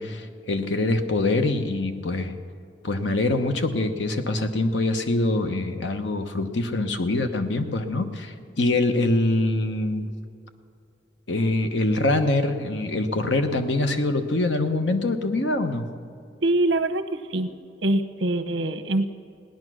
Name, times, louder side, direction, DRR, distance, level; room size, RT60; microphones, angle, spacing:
voice 1, 0.0-2.3 2.8-10.1 11.3-15.9, left 2 dB, 75° left, 7 dB, 1.1 m, -24 dB
voice 2, 16.4-17.5 17.8-19.2, right 2 dB, 80° right, 9 dB, 0.9 m, -24 dB
17.5 x 10.5 x 6.3 m, 2.4 s
head